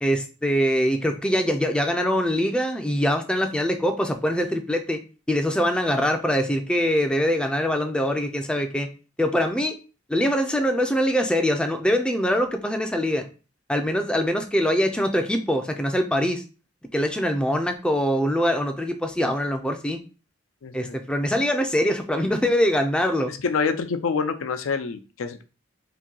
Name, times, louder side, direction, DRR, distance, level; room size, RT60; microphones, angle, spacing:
voice 1, 0.0-5.0 5.3-8.9 9.2-9.7 10.1-13.3 13.7-16.4 16.9-20.0 20.7-23.3, equal, 5° left, 5 dB, 0.3 m, -23 dB
voice 2, 20.6-21.0 23.4-25.4, left 5 dB, 90° left, 8 dB, 0.4 m, -26 dB
2.9 x 2.6 x 3.7 m, 0.34 s
head